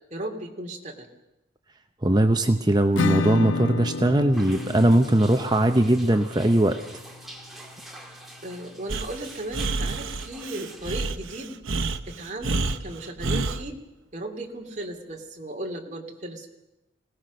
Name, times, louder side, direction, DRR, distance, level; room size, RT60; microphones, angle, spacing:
voice 1, 0.1-1.1 8.4-13.8 14.1-16.5, right 1 dB, 35° right, 2 dB, 3.0 m, -36 dB
voice 2, 2.0-6.8, right 1 dB, 20° right, 7 dB, 0.8 m, -20 dB
Acoustic guitar / Strum, 3.0-8.4, left 3 dB, 75° left, 0.7 m, -31 dB
sound 1, 4.3-10.9, right 1 dB, ahead, 2.5 m, -46 dB
Breathing, 8.9-13.6, right 3 dB, 85° right, 1.1 m, -29 dB
25.5 x 18.0 x 6.5 m, 0.94 s
head